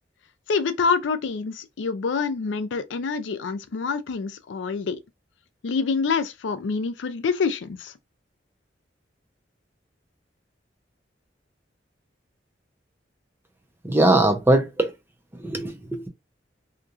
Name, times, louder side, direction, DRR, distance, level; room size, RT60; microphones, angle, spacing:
voice 1, 0.5-5.0 5.6-7.9, left 5 dB, 85° left, 0.4 m, -26 dB
voice 2, 13.8-14.9 15.3-16.1, right 1 dB, 15° right, 0.6 m, -21 dB
2.9 x 2.4 x 2.5 m
head